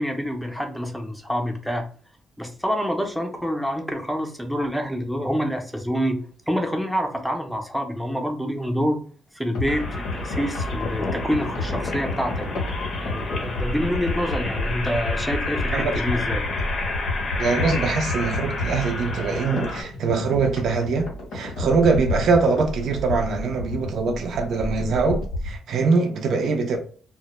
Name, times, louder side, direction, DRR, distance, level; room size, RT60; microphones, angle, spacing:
voice 1, 0.0-1.8 2.4-6.2 6.5-9.0 9.3-12.4 13.0-16.4, equal, ahead, 0.5 m, -27 dB
sound 1, 9.5-25.6, left 2 dB, 90° left, 0.8 m, -30 dB
sound 2, 9.7-19.8, left 3 dB, 45° left, 0.6 m, -31 dB
voice 2, 17.4-21.1 21.3-26.8, right 4 dB, 65° right, 0.4 m, -23 dB
2.1 x 2.0 x 2.9 m
cardioid pair, 90°, 0 cm